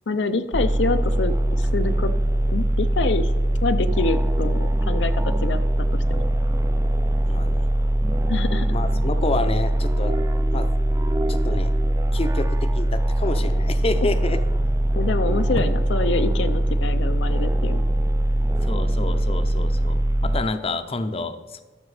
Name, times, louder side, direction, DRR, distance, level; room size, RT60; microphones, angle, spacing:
voice 1, 0.1-2.1 2.5-3.3 3.6-6.2 8.3-8.7 15.0-17.9, left 3 dB, 75° left, 9 dB, 0.6 m, -26 dB
sound 1, 0.5-20.4, right 1 dB, 15° right, 0.4 m, -22 dB
voice 2, 7.2-7.7 8.7-10.1 10.5-10.7 11.3-11.7 12.1-14.4 15.5-15.6 18.6-21.6, left 2 dB, 35° left, 9 dB, 0.6 m, -28 dB
12.5 x 6.1 x 4.8 m, 1.2 s
head